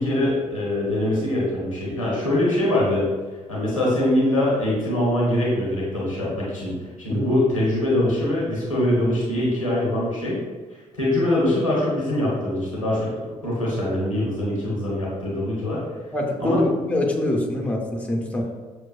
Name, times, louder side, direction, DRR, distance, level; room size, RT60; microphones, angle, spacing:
voice 1, 0.0-3.1 3.5-6.7 7.0-10.4 10.9-13.1 13.4-15.8 16.4-16.6, left 1 dB, 90° left, -6 dB, 0.8 m, -23 dB
voice 2, 16.1-18.4, left 1 dB, 10° left, 0 dB, 0.7 m, -24 dB
6.0 x 2.2 x 2.3 m, 1.4 s
figure-of-eight pair, 45°, 16 cm